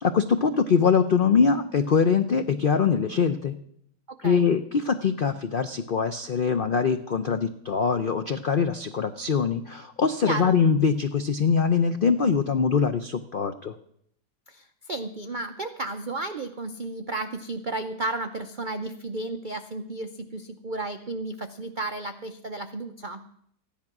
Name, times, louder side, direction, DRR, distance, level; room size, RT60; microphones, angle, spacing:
voice 1, 0.0-3.5 4.2-13.7, left 6 dB, 90° left, 9 dB, 0.4 m, -23 dB
voice 2, 4.1-4.5 10.2-10.6 14.5-23.2, right 2 dB, 70° right, 7 dB, 0.4 m, -33 dB
14.5 x 10.5 x 6.0 m, 0.69 s
omnidirectional pair, 1.8 m